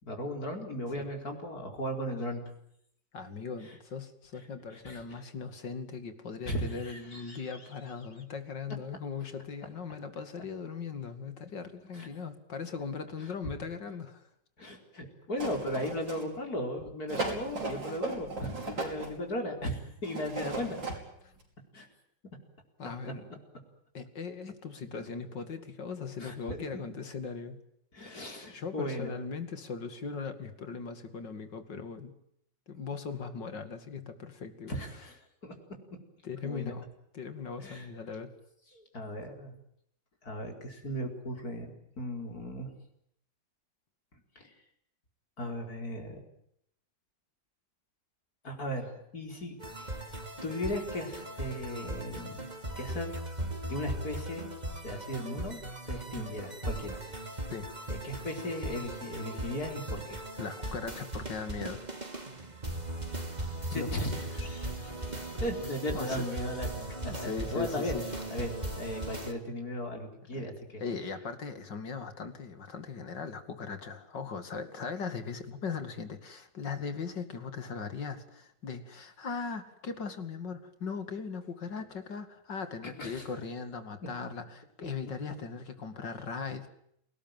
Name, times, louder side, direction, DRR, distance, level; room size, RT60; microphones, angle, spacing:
voice 1, 0.0-2.4 4.7-5.2 6.5-7.4 11.9-12.1 13.2-13.3 14.6-20.8 21.7-21.9 26.2-26.6 27.9-29.2 34.7-35.2 35.4-35.5 36.4-36.7 37.6-37.9 38.7-39.5 40.2-42.7 44.3-44.5 45.4-46.2 48.4-50.0 50.4-52.5 52.8-53.1 53.7-54.5 54.8-57.0 57.9-60.2 63.7-64.9 65.4-67.9 68.3-70.8 82.8-83.2, equal, 55° left, 3 dB, 5.0 m, -37 dB
voice 2, 3.1-14.2 22.8-23.3 23.9-27.6 28.5-32.1 32.7-34.8 36.2-36.9 37.1-38.3 57.5-57.7 60.4-61.9 63.7-63.9 65.9-66.3 67.0-68.1 68.4-68.5 70.3-70.5 70.8-86.7, left 5 dB, 75° left, 9 dB, 3.1 m, -39 dB
sound 1, 15.4-16.5 17.1-19.2 20.0-21.0 21.4-21.5, right 3 dB, 90° right, 6.1 m, -37 dB
sound 2, 49.6-69.3, right 1 dB, 20° right, 2.8 m, -38 dB
28.0 x 19.0 x 9.1 m, 0.73 s
omnidirectional pair, 2.0 m